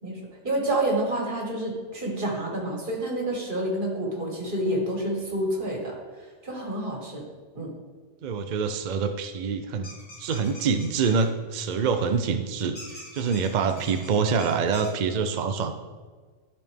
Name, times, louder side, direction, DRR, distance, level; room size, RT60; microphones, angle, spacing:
voice 1, 0.0-7.2 7.6-7.7, right 1 dB, 40° right, -1 dB, 1.9 m, -29 dB
voice 2, 8.2-9.9 10.2-15.7, right 5 dB, 70° right, 7 dB, 0.4 m, -26 dB
sound 1, 9.8-11.2 12.7-14.9, left 1 dB, 20° left, 1.9 m, -44 dB
12.0 x 4.3 x 3.5 m, 1.4 s
omnidirectional pair, 1.4 m